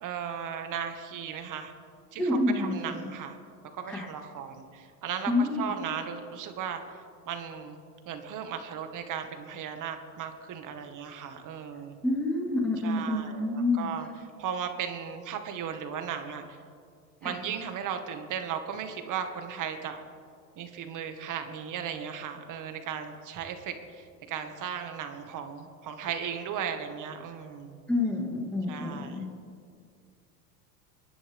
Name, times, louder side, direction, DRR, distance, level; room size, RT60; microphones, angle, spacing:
voice 1, 0.0-1.7 2.1-3.4 3.7-6.8 7.3-7.8 8.1-12.0 12.8-14.1 14.4-16.6 17.2-20.0 20.6-27.8 28.7-29.3, right 8 dB, 40° right, 6 dB, 1.8 m, -36 dB
voice 2, 2.2-3.1 3.9-4.1 5.3-5.6 12.0-13.9 17.2-17.4 27.9-29.3, left 2 dB, ahead, -1 dB, 2.0 m, -28 dB
27.5 x 11.0 x 3.6 m, 2.2 s
supercardioid pair, 110°, 48 cm